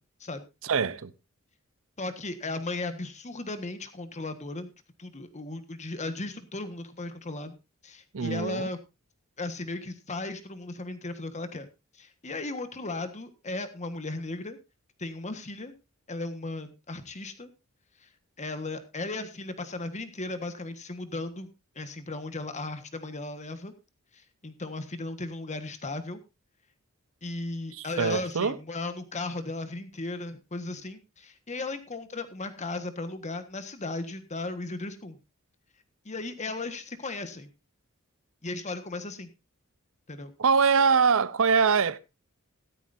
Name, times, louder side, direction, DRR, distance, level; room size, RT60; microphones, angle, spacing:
voice 1, 0.6-1.1 8.1-8.7 27.7-28.6 40.4-42.0, right 5 dB, 65° right, 0.7 m, -23 dB
voice 2, 2.0-4.7 5.0-7.5 7.8-8.8 9.4-11.7 11.9-14.6 15.0-15.7 16.1-17.5 18.0-18.1 18.4-21.5 21.7-23.7 24.1-26.2 27.2-35.2 36.0-37.5 38.4-39.3 40.1-40.3, left 2 dB, 35° left, 1.4 m, -36 dB
15.0 x 12.5 x 2.6 m
head